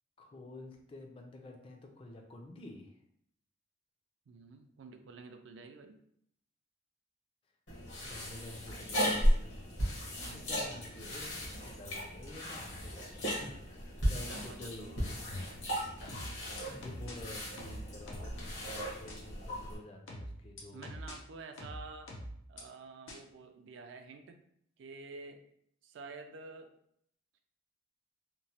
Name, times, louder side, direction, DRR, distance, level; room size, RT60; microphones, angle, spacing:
voice 1, 0.2-3.0 8.0-9.6 10.3-15.2 16.7-20.9, left 1 dB, 30° left, 2 dB, 0.3 m, -50 dB
voice 2, 4.3-6.0 10.2-10.5 14.1-15.1 16.1-16.4 20.7-22.2 22.5-24.4 24.8-25.4 25.8-26.7, right 4 dB, 65° right, 7 dB, 0.3 m, -50 dB
sound 1, 7.7-19.7, equal, 70° left, 1.0 m, -35 dB
sound 2, 16.1-17.1 17.6-18.4 19.1-19.2 20.1-21.1 21.6-22.6 23.1-23.2, equal, 90° left, 0.6 m, -44 dB
2.9 x 2.0 x 2.7 m, 0.69 s
head